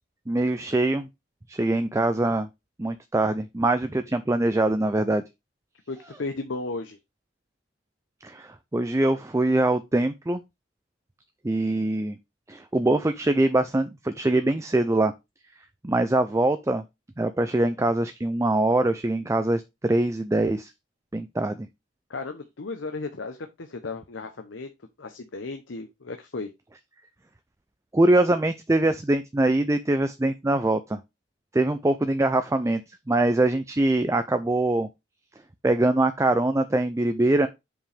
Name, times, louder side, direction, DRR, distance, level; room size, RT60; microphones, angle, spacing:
voice 1, 0.3-1.1 1.5-2.5 2.8-5.2 8.2-10.4 11.4-12.2 12.5-15.1 15.8-16.8 17.2-20.7 21.1-21.7 27.9-31.0 31.5-32.8 33.1-34.9 35.6-37.5, right 2 dB, 15° right, 0.4 m, -23 dB
voice 2, 5.9-7.0 22.1-24.7 25.0-26.5, left 3 dB, 80° left, 0.8 m, -35 dB
7.5 x 5.4 x 3.4 m
head